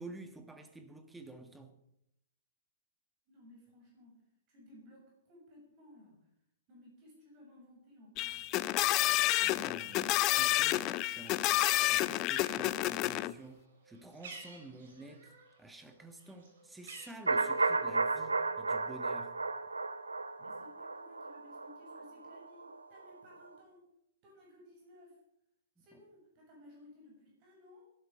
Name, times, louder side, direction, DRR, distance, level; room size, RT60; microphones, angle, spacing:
voice 1, 0.0-1.8 9.4-11.4 11.9-19.3 25.8-26.0, right 2 dB, 5° right, 1.6 m, -50 dB
voice 2, 3.3-4.2 4.5-6.3 6.7-9.0 20.4-23.9 24.2-25.2 25.8-27.8, left 1 dB, 35° right, 7.2 m, -58 dB
sound 1, 8.2-13.3, left 17 dB, 30° left, 0.5 m, -30 dB
Bird, 11.0-15.6 15.9-17.8, right 4 dB, 55° right, 4.4 m, -52 dB
sound 2, 17.3-23.1 23.4-23.5, right 3 dB, 80° right, 1.0 m, -34 dB
17.5 x 12.5 x 5.1 m
figure-of-eight pair, 110°, 0 cm